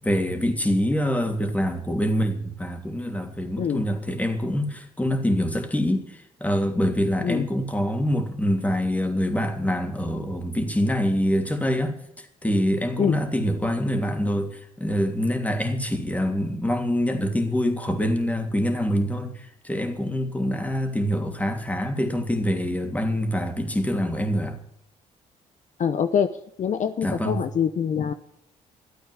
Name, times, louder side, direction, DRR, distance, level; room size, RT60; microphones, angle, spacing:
voice 1, 0.0-24.6 27.0-27.4, equal, 10° left, 3.0 m, -25 dB
voice 2, 25.8-26.3 26.6-28.1, left 7 dB, 50° left, 0.9 m, -24 dB
13.5 x 8.7 x 9.6 m
hypercardioid pair, 55°, 16 cm